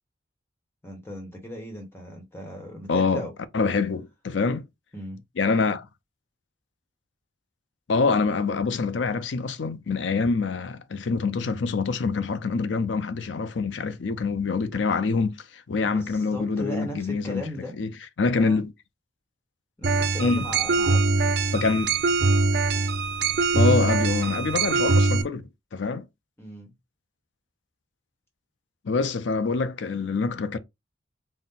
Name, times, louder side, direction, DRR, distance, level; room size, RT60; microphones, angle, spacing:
voice 1, 0.8-3.3 4.9-5.2 15.8-17.7 18.3-18.6 19.8-21.2 26.4-26.7, equal, 10° left, 1.1 m, -37 dB
voice 2, 2.9-3.3 3.5-4.6 5.4-5.9 7.9-17.4 17.8-17.9 18.2-18.7 20.2-20.5 21.5-21.9 23.5-25.4 25.7-26.1 28.8-30.6, left 4 dB, 75° left, 0.5 m, -25 dB
sound 1, 19.8-25.2, right 3 dB, 55° right, 0.5 m, -22 dB
4.1 x 2.1 x 3.7 m
head